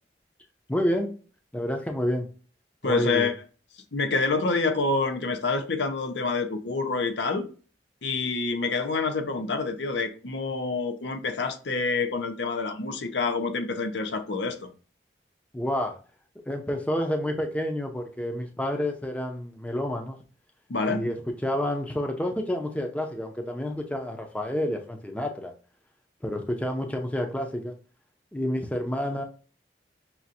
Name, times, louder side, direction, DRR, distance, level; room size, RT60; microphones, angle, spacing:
voice 1, 0.7-1.1 1.5-2.3 2.8-3.3 15.5-16.0 16.4-20.2 20.9-25.5 26.2-27.7 28.3-29.2, left 1 dB, 10° left, 0.5 m, -29 dB
voice 2, 2.8-3.3 3.9-7.4 8.0-14.7 20.7-21.0, left 4 dB, 80° left, 0.7 m, -27 dB
5.8 x 2.5 x 2.7 m
head